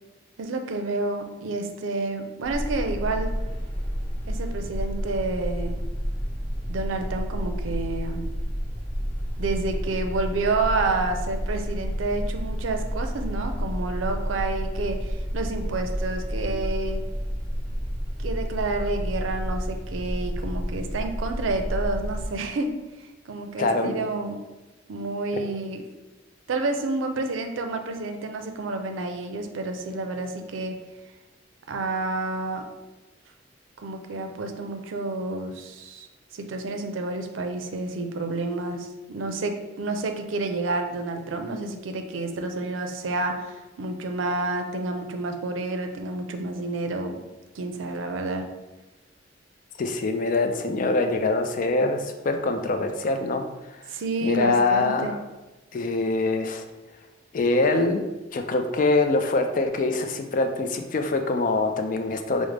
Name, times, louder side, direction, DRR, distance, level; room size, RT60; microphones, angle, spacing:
voice 1, 0.4-3.4 4.3-5.7 6.7-8.3 9.4-17.0 18.2-22.7 23.0-24.4 24.9-25.8 26.5-30.8 31.7-32.7 33.8-47.2 47.5-48.5 53.9-55.1, right 2 dB, 85° right, 5 dB, 0.5 m, -29 dB
sound 1, 2.4-22.3, equal, 25° left, 1.0 m, -30 dB
voice 2, 23.6-24.0 49.8-53.4 53.7-53.8 54.2-55.2 55.7-56.6 57.3-58.1 58.3-62.5, left 3 dB, 45° left, 6 dB, 0.3 m, -24 dB
4.9 x 2.0 x 3.2 m, 1.1 s
head